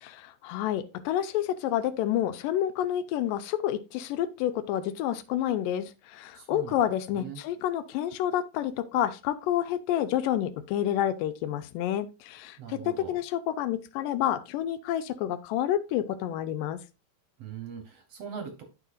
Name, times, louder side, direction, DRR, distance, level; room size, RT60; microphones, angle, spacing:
voice 1, 0.0-16.8, left 11 dB, 90° left, 2.3 m, -29 dB
voice 2, 6.3-6.8 7.1-7.4 12.6-13.2 17.4-18.6, right 7 dB, 65° right, 1.8 m, -41 dB
13.0 x 4.8 x 2.5 m
omnidirectional pair, 3.9 m